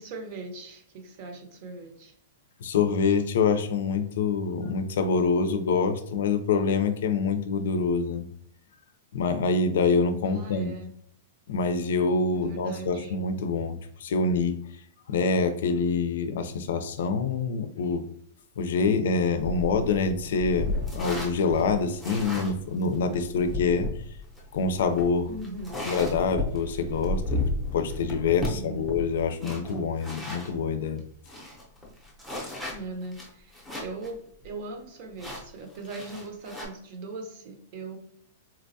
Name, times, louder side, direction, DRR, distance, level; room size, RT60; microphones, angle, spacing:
voice 1, 0.0-2.1 10.2-10.9 12.3-13.1 25.3-26.0 28.5-29.1 32.7-38.0, right 3 dB, 45° right, 5 dB, 0.7 m, -40 dB
voice 2, 2.6-8.2 9.1-10.7 11.5-14.6 15.1-18.0 18.6-23.9 24.5-25.3 25.9-27.4 27.7-31.0, left 4 dB, 70° left, 8 dB, 0.4 m, -26 dB
sound 1, 19.4-30.6 31.0-31.1 31.3-34.1 34.4-34.5 35.2-36.7, left 2 dB, ahead, 0.7 m, -34 dB
4.0 x 2.2 x 2.7 m, 0.68 s
supercardioid pair, 160°, 0 cm